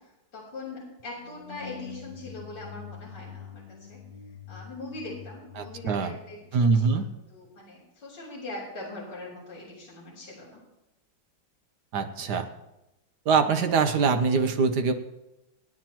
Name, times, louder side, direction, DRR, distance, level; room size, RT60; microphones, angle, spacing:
voice 1, 0.3-3.6 3.9-4.0 4.5-7.0 7.3-10.6, left 2 dB, 60° left, -7 dB, 4.1 m, -41 dB
sound 1, 1.1-7.1, left 7 dB, 45° left, 2.4 m, -45 dB
voice 2, 5.6-6.2 6.5-7.1 11.9-12.5 13.3-14.9, right 5 dB, 65° right, 7 dB, 1.5 m, -23 dB
24.0 x 9.7 x 3.0 m, 0.95 s
omnidirectional pair, 2.1 m